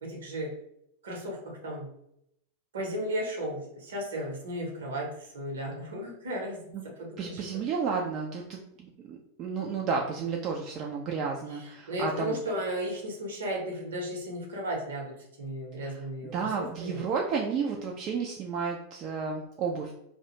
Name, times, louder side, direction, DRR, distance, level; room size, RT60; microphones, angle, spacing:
voice 1, 0.0-0.5 1.0-1.9 2.7-6.7 7.0-7.4 11.5-17.0, equal, 65° right, -1 dB, 0.8 m, -35 dB
voice 2, 7.2-12.4 15.8-16.0 16.2-19.9, right 5 dB, 35° right, 0 dB, 0.3 m, -32 dB
2.4 x 2.1 x 2.8 m, 0.77 s
figure-of-eight pair, 90°, 0 cm